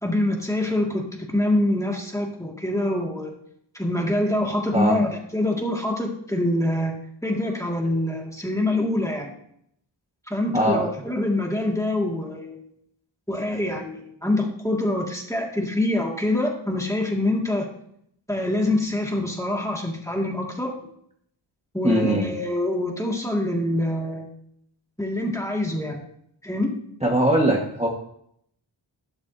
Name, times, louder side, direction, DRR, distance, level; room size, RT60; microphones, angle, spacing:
voice 1, 0.0-3.3 3.7-7.0 7.2-9.3 10.3-12.6 13.3-17.7 18.3-20.8 21.7-24.3 25.0-26.0 26.4-26.7, left 1 dB, 5° left, -1 dB, 2.1 m, -25 dB
voice 2, 21.8-22.2 27.0-27.9, right 1 dB, 15° right, -2 dB, 1.6 m, -20 dB
11.5 x 11.0 x 2.8 m, 0.70 s
wide cardioid pair, 80°, 48 cm